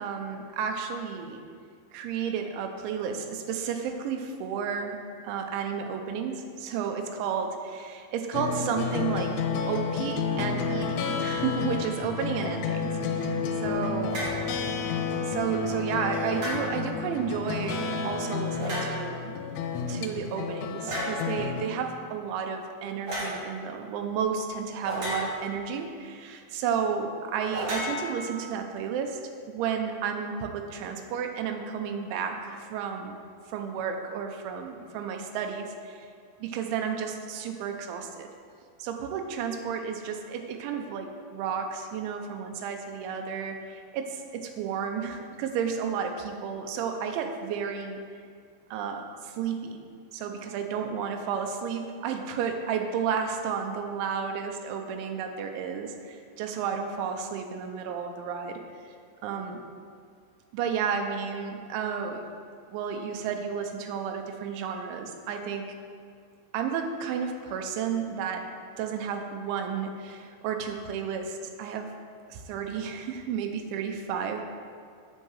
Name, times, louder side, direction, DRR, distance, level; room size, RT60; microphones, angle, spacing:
voice 1, 0.0-1.4 1.9-5.0 5.2-14.3 15.2-19.4 19.9-29.2 29.5-33.2 33.5-36.1 36.4-38.3 38.8-48.0 48.7-49.8 50.1-58.9 59.2-59.6 60.5-62.2 62.7-65.7 66.5-68.5 68.8-71.9 72.3-74.4, right 7 dB, 85° right, 4 dB, 3.1 m, -32 dB
sound 1, 8.3-21.7, left 5 dB, 90° left, 3.1 m, -31 dB
sound 2, 14.1-14.4 16.3-16.9 18.6-19.2 20.9-21.2 23.1-23.4 24.8-25.6 27.5-28.6, equal, 45° right, 2.8 m, -33 dB
8.1 x 4.8 x 7.3 m, 2.2 s
omnidirectional pair, 5.4 m